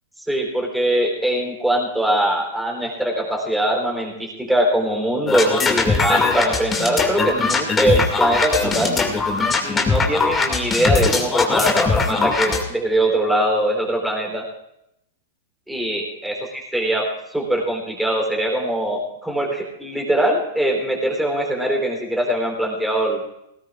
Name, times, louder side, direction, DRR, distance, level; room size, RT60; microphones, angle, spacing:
voice 1, 0.3-8.9 9.6-14.5 15.7-23.2, right 1 dB, ahead, 0 dB, 3.4 m, -22 dB
sound 1, 5.3-12.6, left 4 dB, 15° left, 2.2 m, -20 dB
20.0 x 18.0 x 2.5 m, 0.80 s
hypercardioid pair, 145°, 0 cm